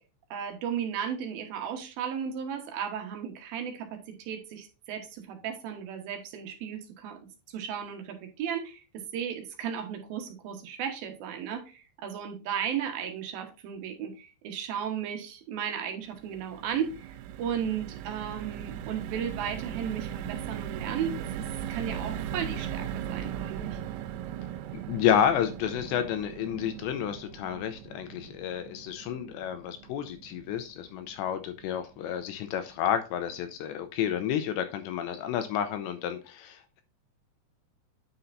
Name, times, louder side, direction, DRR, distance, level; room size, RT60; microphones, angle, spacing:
voice 1, 0.3-7.2 7.5-23.8, right 8 dB, 70° right, 5 dB, 2.4 m, -35 dB
sound 1, 16.0-32.4 32.8-32.9 33.1-33.4, right 10 dB, 90° right, 3.3 m, -39 dB
voice 2, 24.9-36.8, left 9 dB, 80° left, 9 dB, 2.7 m, -30 dB
10.0 x 6.6 x 2.6 m, 0.31 s
omnidirectional pair, 5.7 m